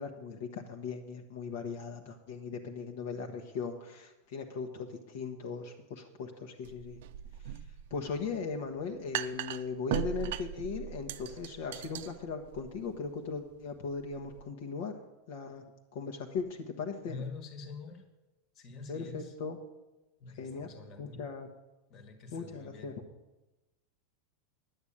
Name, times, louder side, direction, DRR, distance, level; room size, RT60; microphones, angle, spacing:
voice 1, 0.0-7.0 7.9-14.9 15.3-15.6 15.9-17.2 18.9-19.6 20.4-20.7 21.0-21.5 22.3-22.9, left 5 dB, 60° left, 3 dB, 1.1 m, -38 dB
sound 1, 6.6-14.4, right 11 dB, 65° right, 0.6 m, -40 dB
voice 2, 17.1-18.1 18.5-19.3 20.2-21.3 21.9-22.9, left 4 dB, 35° left, 7 dB, 1.5 m, -45 dB
10.5 x 8.0 x 8.6 m, 1.0 s
supercardioid pair, 160°, 0 cm